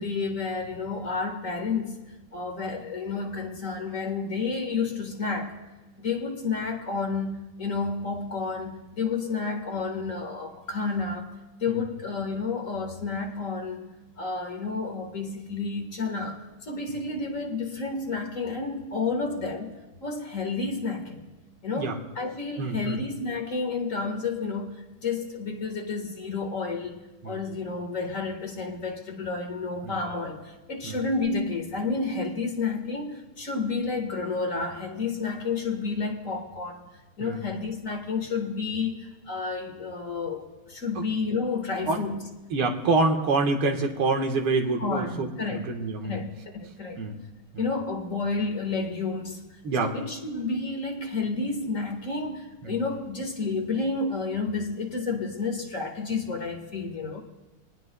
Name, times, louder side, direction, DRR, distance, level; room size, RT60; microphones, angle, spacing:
voice 1, 0.0-2.0 2.3-5.5 6.0-11.3 11.6-13.9 14.2-19.7 20.0-21.3 21.6-36.9 37.2-42.2 44.8-45.6 46.0-47.0 47.6-49.4 49.8-57.2, left 4 dB, 40° left, 3 dB, 1.8 m, -30 dB
voice 2, 22.6-23.0 27.2-27.4 29.8-30.0 30.8-31.0 37.2-37.4 41.0-41.1 41.9-42.0 42.5-46.2 47.0-47.2 47.5-47.7 49.6-50.0 52.6-52.7, right 3 dB, 90° right, 3 dB, 2.3 m, -26 dB
26.0 x 19.5 x 2.2 m, 1.1 s
omnidirectional pair, 2.4 m